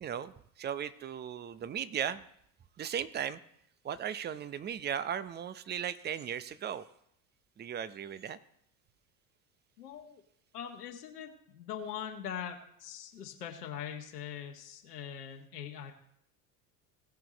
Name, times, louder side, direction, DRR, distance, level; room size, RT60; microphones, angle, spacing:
voice 1, 0.0-2.2 2.8-3.4 3.8-6.9 7.6-8.4, right 9 dB, 20° right, 14 dB, 0.7 m, -37 dB
voice 2, 9.8-10.2 10.5-15.9, left 8 dB, 75° left, 2 dB, 1.5 m, -42 dB
18.0 x 5.9 x 4.0 m, 0.71 s
figure-of-eight pair, 70°, 47 cm